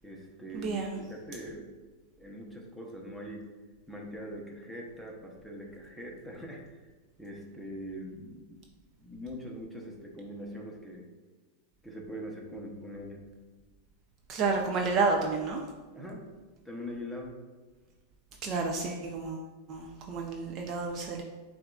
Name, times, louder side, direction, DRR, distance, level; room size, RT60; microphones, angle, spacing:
voice 1, 0.0-1.7 2.2-3.5 3.9-6.9 7.2-8.6 9.0-11.1 11.8-13.2 15.9-16.2 16.6-17.4, equal, ahead, -2 dB, 0.9 m, -42 dB
voice 2, 0.5-1.0 14.3-15.6 18.4-21.2, right 4 dB, 40° right, 1 dB, 0.5 m, -30 dB
7.5 x 2.5 x 2.4 m, 1.3 s
supercardioid pair, 130°, 0 cm